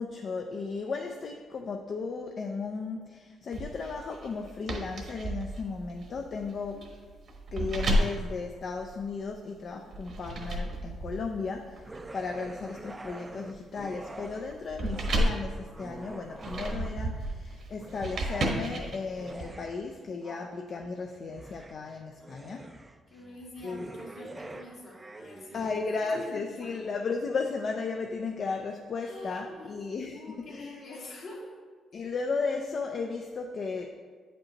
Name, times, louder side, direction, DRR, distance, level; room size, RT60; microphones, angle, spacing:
voice 1, 0.0-6.8 7.5-22.7 23.6-23.9 25.5-30.7 31.9-33.9, left 4 dB, 55° left, 3 dB, 0.4 m, -35 dB
sound 1, 3.5-9.3 9.9-19.4, right 1 dB, 60° right, 1.1 m, -33 dB
sound 2, 11.8-14.5 14.8-17.2 17.7-26.3, right 2 dB, 20° right, 0.4 m, -45 dB
voice 2, 22.2-22.7 23.1-25.7 26.1-26.8 29.0-29.8 30.1-31.6, left 2 dB, 70° left, -4 dB, 1.9 m, -45 dB
8.4 x 5.2 x 2.9 m, 1.5 s
cardioid pair, 90°, 0 cm